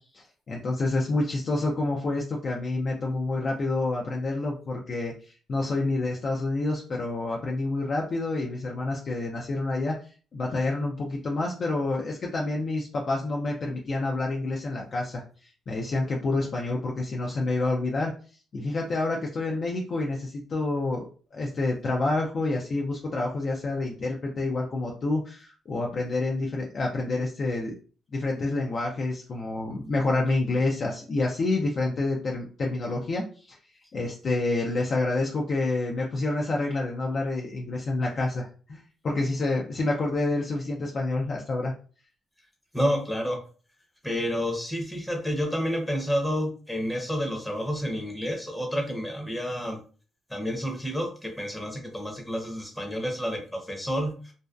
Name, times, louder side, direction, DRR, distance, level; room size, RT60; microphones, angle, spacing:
voice 1, 0.1-10.0 10.3-18.1 18.5-27.7 28.1-33.6 33.9-41.7, left 2 dB, 50° left, -1 dB, 0.4 m, -28 dB
voice 2, 42.7-43.4 44.0-49.8 50.3-54.3, equal, 5° left, 1 dB, 0.7 m, -29 dB
2.5 x 2.1 x 2.3 m, 0.39 s
cardioid pair, 90°, 0 cm